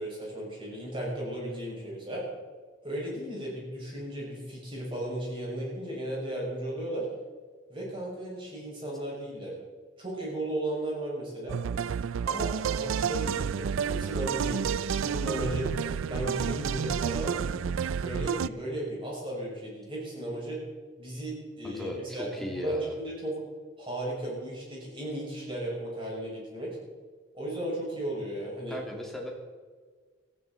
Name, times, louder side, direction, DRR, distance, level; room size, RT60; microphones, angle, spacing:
voice 1, 0.0-2.2 2.8-7.1 7.7-9.5 10.0-11.6 12.2-15.8 16.1-17.6 17.9-20.6 21.0-23.3 23.8-26.8 27.3-28.8, right 1 dB, 25° right, -4 dB, 6.0 m, -35 dB
sound 1, 11.5-18.5, right 7 dB, 75° right, 0.4 m, -30 dB
voice 2, 21.6-23.0 28.7-29.3, equal, ahead, -1 dB, 2.4 m, -37 dB
18.0 x 15.0 x 4.1 m, 1.5 s
head